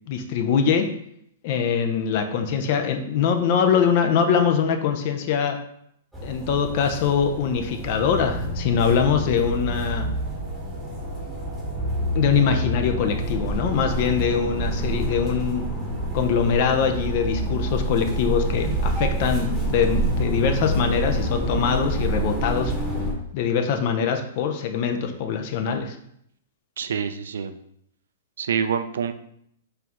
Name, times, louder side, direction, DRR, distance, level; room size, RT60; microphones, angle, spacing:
voice 1, 0.1-0.8 1.4-5.6 6.2-10.1 12.1-15.6 16.1-22.7 23.3-26.0, left 7 dB, 50° left, 6 dB, 0.6 m, -23 dB
sound 1, 6.1-23.1, right 1 dB, ahead, 1.1 m, -27 dB
voice 2, 26.8-27.5 28.4-29.1, right 7 dB, 75° right, 10 dB, 0.3 m, -26 dB
4.5 x 2.6 x 3.5 m, 0.72 s
hypercardioid pair, 120°, 0 cm